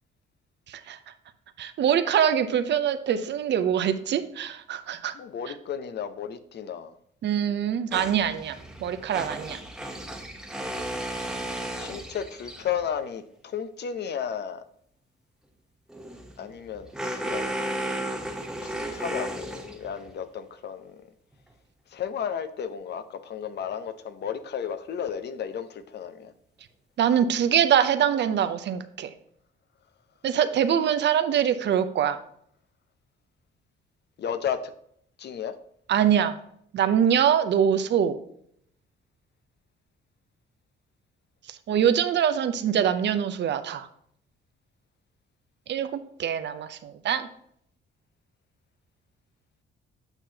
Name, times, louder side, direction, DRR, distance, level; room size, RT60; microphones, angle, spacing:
voice 1, 1.6-5.1 7.2-8.6 8.8-9.6 27.0-29.1 30.2-32.2 35.9-36.4 36.7-38.2 41.5-43.9 45.7-45.9 46.2-47.3, right 9 dB, 60° right, 10 dB, 0.7 m, -24 dB
voice 2, 5.1-6.9 11.8-14.6 16.4-17.5 18.6-21.0 21.9-26.3 34.2-34.7 35.2-35.5, left 8 dB, 60° left, 11 dB, 0.7 m, -33 dB
sound 1, 7.9-12.9 15.9-20.1, right 1 dB, 5° right, 1.0 m, -34 dB
8.9 x 5.7 x 2.8 m, 0.69 s
cardioid pair, 90°, 20 cm